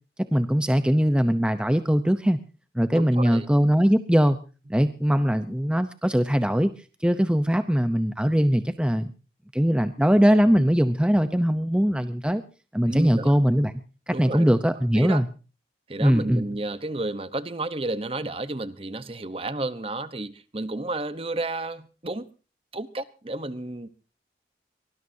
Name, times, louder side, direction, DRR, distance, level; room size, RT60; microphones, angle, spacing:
voice 1, 0.2-2.4 2.7-4.4 4.7-6.7 7.0-9.1 9.5-12.4 12.7-13.7 14.1-15.3 16.0-16.4, equal, 5° right, 10 dB, 0.7 m, -21 dB
voice 2, 2.9-3.5 12.9-13.3 14.1-14.6 14.9-15.2 15.9-22.2 22.7-23.9, right 2 dB, 30° right, 13 dB, 1.0 m, -31 dB
23.5 x 19.5 x 2.8 m, 0.35 s
head